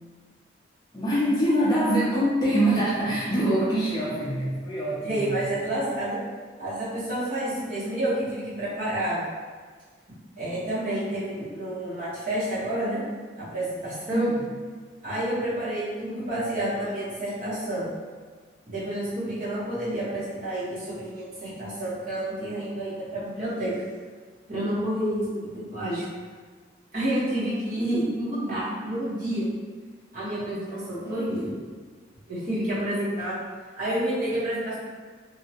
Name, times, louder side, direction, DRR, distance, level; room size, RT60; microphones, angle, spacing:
voice 1, 0.9-5.4 14.1-14.4 31.0-31.5, right 1 dB, 20° left, -7 dB, 0.4 m, -24 dB
voice 2, 5.0-6.2 6.6-9.2 10.4-13.0 13.4-14.3 15.0-17.9 18.7-23.7 24.5-26.1 26.9-29.5 30.1-31.5 32.3-33.4 33.8-34.8, right 1 dB, 45° right, -10 dB, 1.0 m, -29 dB
2.6 x 2.1 x 2.8 m, 1.5 s
head